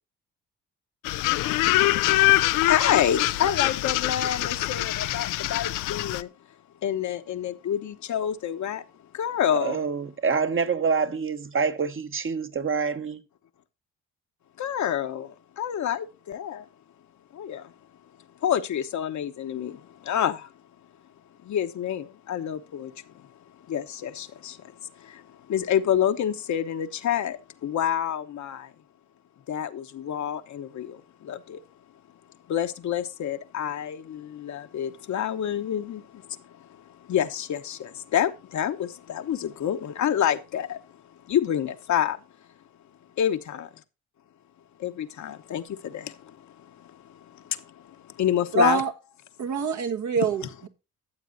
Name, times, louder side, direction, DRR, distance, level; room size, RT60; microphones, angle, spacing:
sound 1, 1.0-6.2, left 17 dB, 85° left, 0.5 m, -24 dB
voice 1, 1.3-6.3 6.8-8.8 9.1-9.8 14.6-16.7 17.3-17.7 18.4-20.5 21.4-23.3 23.6-28.7 29.5-31.6 32.5-42.2 43.2-43.7 44.8-48.8, left 10 dB, 65° left, 1.1 m, -28 dB
voice 2, 9.5-13.2, right 5 dB, 40° right, 1.3 m, -26 dB
voice 3, 48.5-48.9 49.4-50.7, right 4 dB, 65° right, 1.7 m, -25 dB
14.0 x 7.4 x 2.6 m
supercardioid pair, 65°, 31 cm